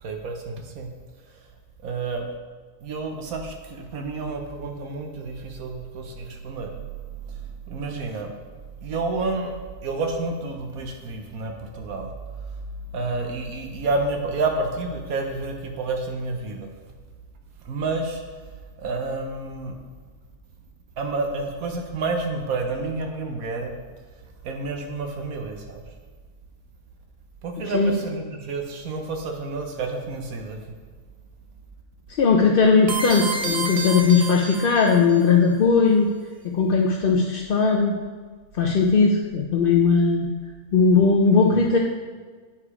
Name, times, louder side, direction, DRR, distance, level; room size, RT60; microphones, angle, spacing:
voice 1, 0.0-0.9 1.8-2.2 2.8-6.7 7.3-7.4 7.7-8.3 8.8-9.5 9.8-12.1 12.9-16.7 17.6-18.2 18.8-19.7 21.0-23.7 24.4-25.8 27.4-30.6, right 3 dB, 85° right, 3 dB, 1.3 m, -29 dB
voice 2, 32.2-36.1 36.5-37.9 38.5-40.3 40.7-41.8, left 5 dB, 55° left, 1 dB, 0.6 m, -18 dB
sound 1, 32.9-35.2, right 3 dB, 35° right, 0.7 m, -29 dB
8.5 x 5.0 x 4.8 m, 1.5 s
omnidirectional pair, 1.5 m